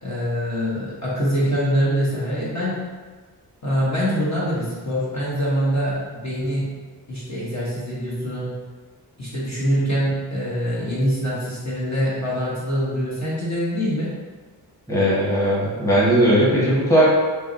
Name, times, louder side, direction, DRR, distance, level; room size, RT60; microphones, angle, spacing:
voice 1, 0.0-2.8 3.6-6.8 7.1-8.6 9.2-14.1, equal, 45° left, -8 dB, 1.1 m, -24 dB
voice 2, 14.9-17.1, equal, 10° left, -8 dB, 1.2 m, -18 dB
4.7 x 3.1 x 2.6 m, 1.4 s
wide cardioid pair, 125°, 40 cm